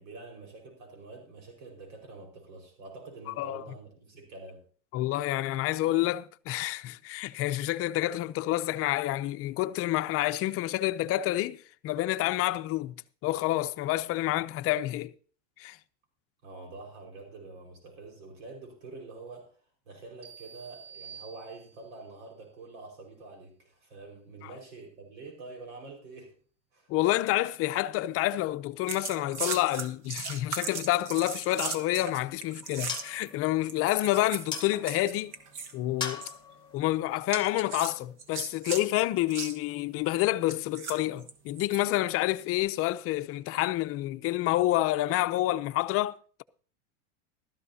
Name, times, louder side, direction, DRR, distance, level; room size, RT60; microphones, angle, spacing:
voice 1, 0.0-4.6 16.4-19.5 19.8-26.4 26.7-26.9, right 3 dB, 80° right, 5.2 m, -46 dB
voice 2, 4.9-12.9 13.2-15.1 15.6-15.8 26.9-35.3 35.7-36.2 36.7-46.4, left 16 dB, 35° left, 0.6 m, -28 dB
sound 1, 20.2-22.0, right 7 dB, 15° right, 4.3 m, -49 dB
sound 2, 28.9-33.3 33.7-35.7 36.0-36.3 37.3-38.8 39.3-39.6 40.5-41.8 42.4-42.6, right 5 dB, 50° right, 1.8 m, -37 dB
sound 3, 32.2-38.1, left 6 dB, 10° left, 1.4 m, -43 dB
15.5 x 13.0 x 2.8 m
supercardioid pair, 130°, 38 cm